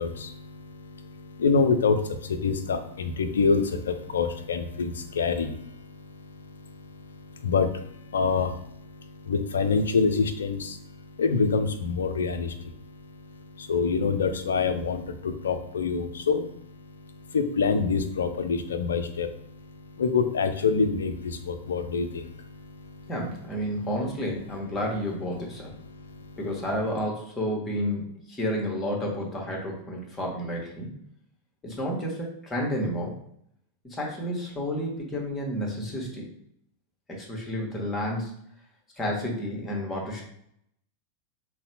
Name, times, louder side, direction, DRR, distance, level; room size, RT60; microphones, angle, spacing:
voice 1, 0.0-23.1 23.6-23.9 25.6-26.4, left 5 dB, 65° left, 9 dB, 0.4 m, -27 dB
voice 2, 23.1-25.7 26.4-30.9 31.6-33.1 33.8-36.3 37.1-38.3 39.0-40.2, equal, 15° left, -1 dB, 1.1 m, -31 dB
3.9 x 2.1 x 2.8 m, 0.72 s
figure-of-eight pair, 90°, 0 cm